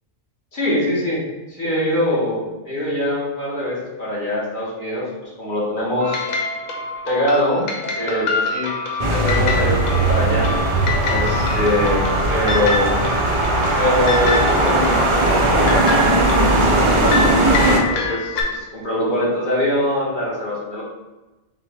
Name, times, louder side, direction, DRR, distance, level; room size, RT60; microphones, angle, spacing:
voice 1, 0.5-1.2 1.5-5.1 5.4-6.2 7.0-7.7 7.9-8.7 9.1-10.5 11.0-13.0 13.8-20.8, left 1 dB, 40° left, -6 dB, 1.5 m, -23 dB
sound 1, 6.0-18.4, left 3 dB, 90° left, 1.1 m, -26 dB
sound 2, 9.0-17.8, right 2 dB, 40° right, 0.4 m, -18 dB
5.8 x 2.3 x 3.5 m, 1.1 s
omnidirectional pair, 1.3 m